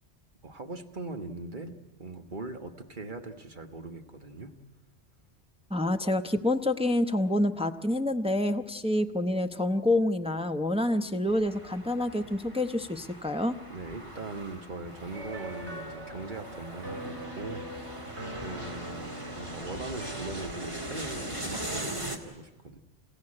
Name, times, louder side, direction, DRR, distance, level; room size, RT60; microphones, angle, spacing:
voice 1, 0.4-4.6 13.7-17.7 18.3-22.8, right 3 dB, 45° right, 6 dB, 1.5 m, -40 dB
voice 2, 5.7-13.6, left 1 dB, 5° right, 7 dB, 0.7 m, -27 dB
sound 1, 11.3-22.2, right 1 dB, 25° right, 2.3 m, -40 dB
sound 2, 15.1-20.3, right 1 dB, 85° right, 5.2 m, -41 dB
29.0 x 16.0 x 9.8 m, 1.2 s
omnidirectional pair, 1.1 m